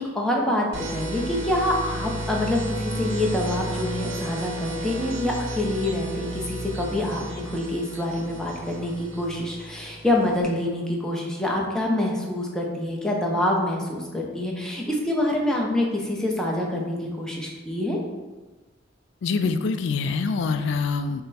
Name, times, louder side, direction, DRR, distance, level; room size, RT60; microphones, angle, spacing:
voice 1, 0.0-18.0, left 1 dB, 5° left, -2 dB, 0.6 m, -26 dB
sound 1, 0.7-10.4, right 1 dB, 65° right, 0.7 m, -33 dB
voice 2, 19.2-21.2, left 4 dB, 65° left, 9 dB, 0.3 m, -25 dB
5.6 x 2.1 x 4.0 m, 1.2 s
head